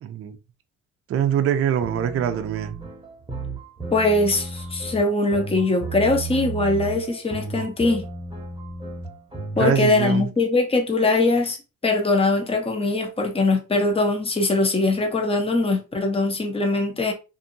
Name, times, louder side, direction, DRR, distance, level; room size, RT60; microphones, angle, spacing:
voice 1, 0.0-0.4 1.1-2.8 9.6-10.3, right 9 dB, 50° right, 0.5 m, -23 dB
sound 1, 1.8-9.7, right 3 dB, 15° right, 0.9 m, -34 dB
voice 2, 3.9-8.0 9.6-11.6 11.8-17.1, left 2 dB, 20° left, 0.7 m, -21 dB
2.7 x 2.6 x 2.6 m
cardioid pair, 90°, 30 cm